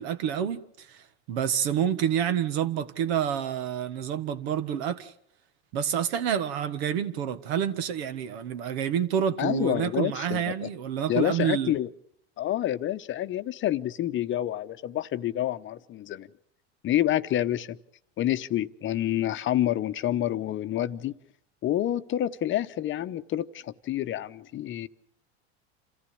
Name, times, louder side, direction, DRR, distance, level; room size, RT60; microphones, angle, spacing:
voice 1, 0.0-5.1 5.7-11.7, right 9 dB, 70° right, 1.6 m, -28 dB
voice 2, 9.4-10.7 11.1-11.9 12.4-16.3 16.8-17.8 18.2-21.1 21.6-24.9, left 12 dB, 35° left, 0.9 m, -28 dB
27.5 x 14.5 x 8.6 m
supercardioid pair, 105°, 33 cm